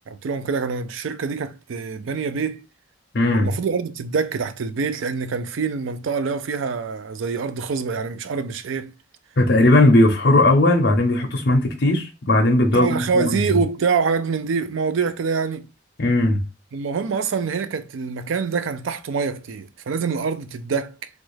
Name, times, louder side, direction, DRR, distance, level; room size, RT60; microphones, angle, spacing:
voice 1, 0.1-2.6 3.3-8.9 12.7-15.7 16.7-21.1, right 5 dB, 85° right, 0.4 m, -25 dB
voice 2, 3.1-3.5 9.4-13.6 16.0-16.4, left 1 dB, 55° left, 0.6 m, -17 dB
3.0 x 2.4 x 3.1 m
head